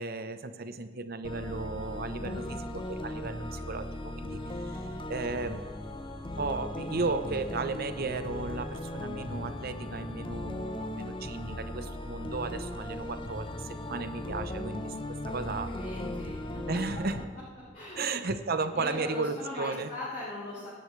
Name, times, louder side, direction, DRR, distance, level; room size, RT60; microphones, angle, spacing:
voice 1, 0.0-2.4 2.7-4.8 5.1-5.6 6.4-14.9 15.2-15.7 16.7-17.2 18.0-19.9, right 3 dB, 50° right, 10 dB, 0.8 m, -34 dB
sound 1, 1.2-17.2, left 1 dB, 25° left, 0.7 m, -38 dB
voice 2, 2.2-2.7 15.6-16.6 17.7-18.3 18.7-20.7, left 2 dB, 45° left, -11 dB, 3.4 m, -40 dB
23.0 x 10.0 x 3.2 m, 1.5 s
head